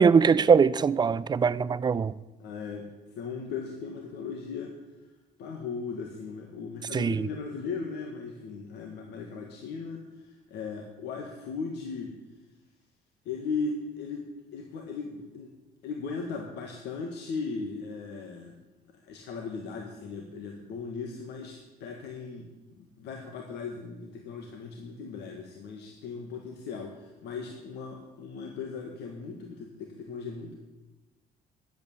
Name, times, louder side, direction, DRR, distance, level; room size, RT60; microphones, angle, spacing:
voice 1, 0.0-2.1 6.9-7.1, right 6 dB, 25° right, 0.5 m, -21 dB
voice 2, 2.4-2.9 3.2-4.7 5.4-12.1 13.3-14.3 14.5-15.5 15.8-18.6 19.0-22.5 22.8-30.6, left 4 dB, 80° left, 1.7 m, -37 dB
11.0 x 8.4 x 9.0 m
cardioid pair, 110°, 17 cm